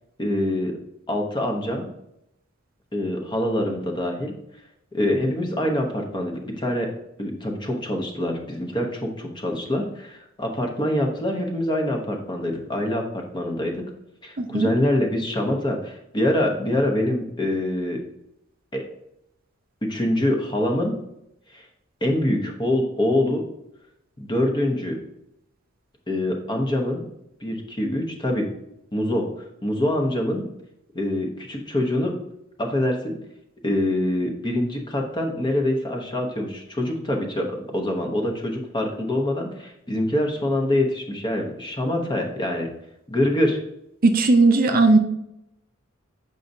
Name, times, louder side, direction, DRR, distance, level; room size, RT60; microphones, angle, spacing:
voice 1, 0.2-0.7 1.1-1.9 2.9-4.3 4.9-6.9 7.2-13.0 13.3-13.8 14.2-18.0 18.7-18.8 19.9-21.0 21.5-21.6 22.0-23.4 24.2-25.0 26.1-27.0 27.4-28.5 28.9-29.3 29.6-30.4 30.9-32.1 32.6-33.2 33.6-42.7 43.1-43.6, left 1 dB, 20° left, 2 dB, 0.9 m, -25 dB
voice 2, 14.4-14.7 44.0-45.0, right 3 dB, 45° right, 6 dB, 0.5 m, -17 dB
7.4 x 5.3 x 2.6 m, 0.80 s
head